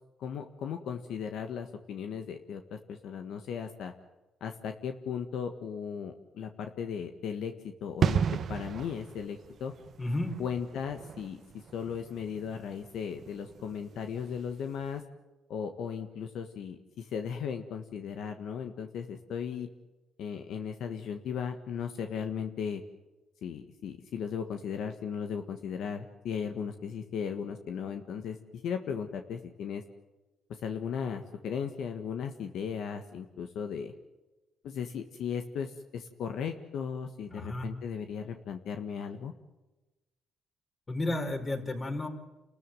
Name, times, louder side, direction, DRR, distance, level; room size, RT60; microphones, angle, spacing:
voice 1, 0.2-3.9 4.4-8.2 8.5-9.7 10.4-11.4 11.7-15.0 15.5-19.7 20.2-22.8 23.4-29.8 30.6-33.9 34.6-39.3, left 7 dB, 75° left, 6 dB, 1.6 m, -36 dB
sound 1, 8.0-14.5 14.8-14.9, right 7 dB, 55° right, 1.0 m, -34 dB
voice 2, 10.0-10.4 37.3-37.7 40.9-42.1, left 2 dB, 30° left, 4 dB, 4.8 m, -32 dB
29.5 x 14.0 x 9.4 m, 1.1 s
cardioid pair, 90°, 0 cm